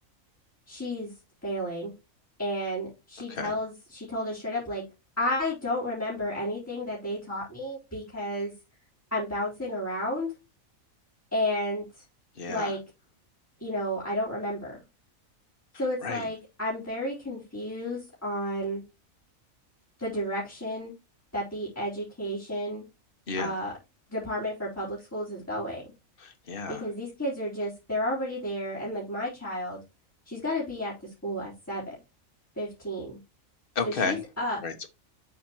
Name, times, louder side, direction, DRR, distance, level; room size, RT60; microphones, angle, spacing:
voice 1, 0.7-1.1 1.4-1.9 2.4-4.8 5.2-8.5 9.1-10.3 11.3-12.0 12.5-12.8 13.6-14.8 15.8-18.8 20.0-20.9 21.3-22.8 23.4-23.7 24.1-25.8 26.7-29.8 30.3-31.9 32.6-33.2 33.8-34.6, left 1 dB, 10° left, -8 dB, 3.9 m, -32 dB
voice 2, 12.4-12.8 16.0-16.3 23.3-23.5 26.2-26.8 33.7-34.2 34.6-34.9, left 4 dB, 45° left, 6 dB, 1.4 m, -32 dB
7.4 x 5.1 x 3.1 m, 0.26 s
omnidirectional pair, 1.4 m